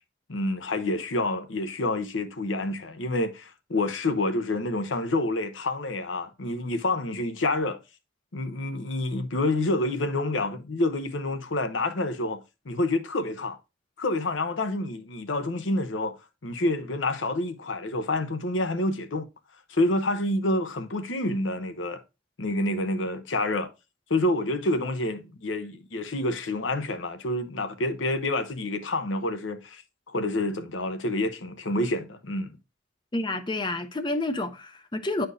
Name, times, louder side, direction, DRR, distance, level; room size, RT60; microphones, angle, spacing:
voice 1, 0.3-7.8 8.3-12.4 12.7-13.6 14.0-16.1 16.4-19.3 19.7-22.0 22.4-23.7 24.1-29.8 30.1-32.5, left 2 dB, 85° left, 0.8 m, -28 dB
voice 2, 33.1-35.3, left 2 dB, 25° left, 0.5 m, -29 dB
9.6 x 4.4 x 2.5 m
head